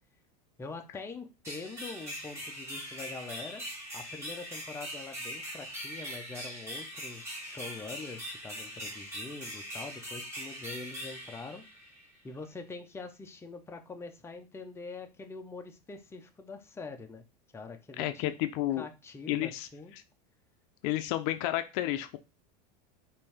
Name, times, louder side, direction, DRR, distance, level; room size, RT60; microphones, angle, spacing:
voice 1, 0.6-3.6 3.9-11.6 12.2-17.2 17.5-18.3 18.8-19.9, left 4 dB, 10° left, 4 dB, 0.7 m, -44 dB
sound 1, 1.4-12.2, equal, 15° right, 2.0 m, -41 dB
voice 2, 18.0-18.9 19.3-19.7 20.8-22.2, left 14 dB, 60° left, 10 dB, 0.5 m, -31 dB
5.3 x 2.6 x 3.4 m, 0.28 s
supercardioid pair, 125°, 21 cm